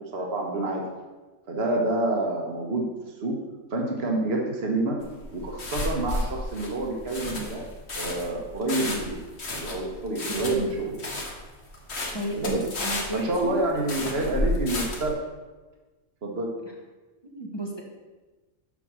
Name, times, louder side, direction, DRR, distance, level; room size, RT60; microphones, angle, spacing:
voice 1, 0.1-0.8 1.5-3.4 3.7-5.0 5.3-7.6 7.9-9.2 9.5-11.1 12.4-12.6 13.1-15.2 16.2-16.5, right 2 dB, 45° right, 0 dB, 1.6 m, -28 dB
sound 1, 5.0-15.1, left 1 dB, 50° left, 1.7 m, -32 dB
voice 2, 12.1-13.6 17.2-17.8, right 1 dB, 20° left, -1 dB, 1.4 m, -34 dB
7.4 x 5.9 x 6.2 m, 1.2 s
omnidirectional pair, 1.5 m